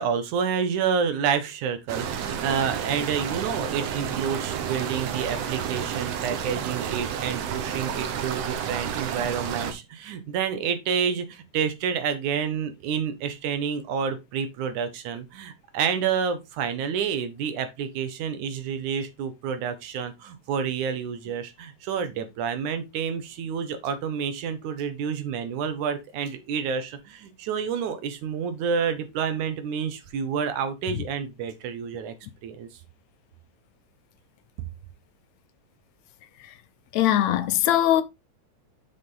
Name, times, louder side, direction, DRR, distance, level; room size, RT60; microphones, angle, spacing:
voice 1, 0.0-32.1 32.4-32.7, right 7 dB, 85° right, 2.7 m, -29 dB
sound 1, 1.9-9.7, right 8 dB, 65° right, 2.0 m, -31 dB
voice 2, 36.9-38.0, left 12 dB, 75° left, 2.0 m, -20 dB
6.9 x 6.1 x 3.8 m
omnidirectional pair, 3.4 m